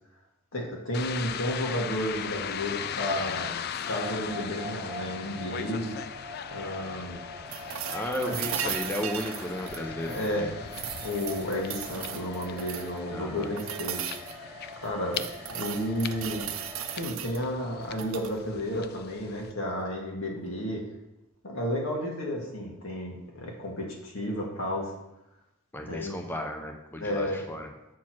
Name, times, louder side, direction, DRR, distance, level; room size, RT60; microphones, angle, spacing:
voice 1, 0.5-3.6 3.9-5.9 6.5-7.2 8.3-8.4 10.0-10.5 11.0-14.5 14.8-15.2 15.5-16.5 16.9-20.8 21.4-24.9 25.9-26.2 27.0-27.4, equal, 80° left, -1 dB, 1.8 m, -32 dB
sound 1, 0.9-19.5, left 8 dB, 50° left, 0.3 m, -39 dB
sound 2, 3.8-17.0, left 1 dB, 20° right, 1.8 m, -44 dB
sound 3, 7.5-10.3 10.7-13.0 13.6-14.4 14.8-17.4 17.9-18.3 20.4-20.5, right 10 dB, 80° right, 0.6 m, -37 dB
voice 2, 7.9-10.5 13.1-13.5 25.7-27.7, left 1 dB, 10° left, 2 dB, 0.6 m, -34 dB
7.4 x 4.5 x 6.0 m, 0.90 s
head